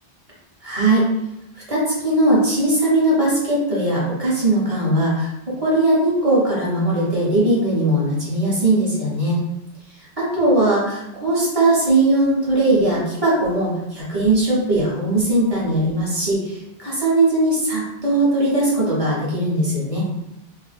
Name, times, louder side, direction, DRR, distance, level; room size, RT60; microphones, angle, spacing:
voice 1, 0.6-1.0 1.7-9.4 10.2-20.1, right 1 dB, 35° right, -7 dB, 1.0 m, -19 dB
2.7 x 2.1 x 3.3 m, 0.91 s
omnidirectional pair, 1.1 m